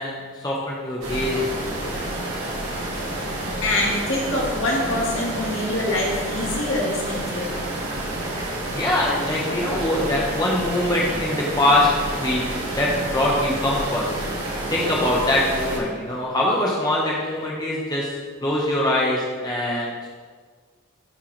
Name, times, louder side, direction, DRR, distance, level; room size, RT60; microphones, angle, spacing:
voice 1, 0.0-1.4 8.7-12.4 12.7-14.1 14.7-18.1 18.4-20.1, left 1 dB, 20° left, -4 dB, 1.0 m, -23 dB
sound 1, 1.0-15.8, right 1 dB, 85° right, 1.9 m, -29 dB
voice 2, 3.6-7.5, left 1 dB, 70° left, -3 dB, 1.6 m, -25 dB
12.0 x 4.5 x 3.3 m, 1.5 s
head